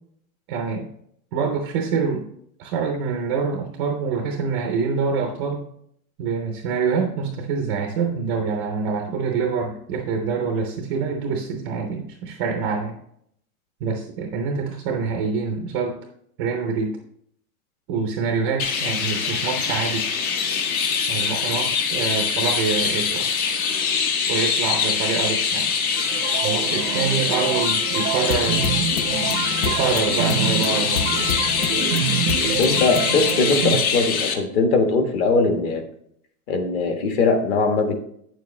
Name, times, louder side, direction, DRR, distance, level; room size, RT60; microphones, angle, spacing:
voice 1, 0.5-0.9 1.3-2.2 2.6-5.6 6.2-13.0 13.8-16.0 16.4-17.0 17.9-20.0 21.1-23.3 24.3-25.6 26.4-28.7 29.6-31.3, right 5 dB, 20° right, 3 dB, 0.4 m, -25 dB
Chirp tweet, 18.6-34.3, left 6 dB, 70° left, 1.5 m, -23 dB
sound 1, 26.0-33.8, right 14 dB, 80° right, 0.6 m, -28 dB
sound 2, 28.3-33.6, left 9 dB, 85° left, 0.7 m, -31 dB
voice 2, 32.6-35.8 36.5-38.0, left 3 dB, 40° left, 6 dB, 1.4 m, -20 dB
8.8 x 7.1 x 3.1 m, 0.69 s
supercardioid pair, 165°, 44 cm